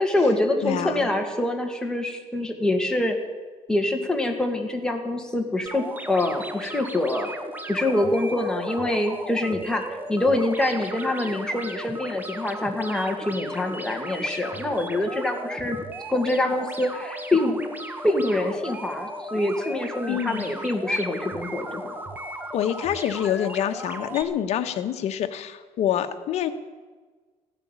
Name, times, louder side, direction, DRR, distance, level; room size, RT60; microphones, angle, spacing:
voice 1, 0.0-3.2 3.7-7.3 7.7-9.8 10.1-15.8 16.1-17.5 18.0-21.9, left 1 dB, 5° left, 2 dB, 2.1 m, -25 dB
voice 2, 0.6-1.1 20.1-20.6 22.5-26.5, left 10 dB, 60° left, 8 dB, 1.2 m, -26 dB
sound 1, 5.7-24.2, right 1 dB, 15° right, 1.5 m, -36 dB
15.0 x 9.9 x 8.3 m, 1.4 s
cardioid pair, 130°, 12 cm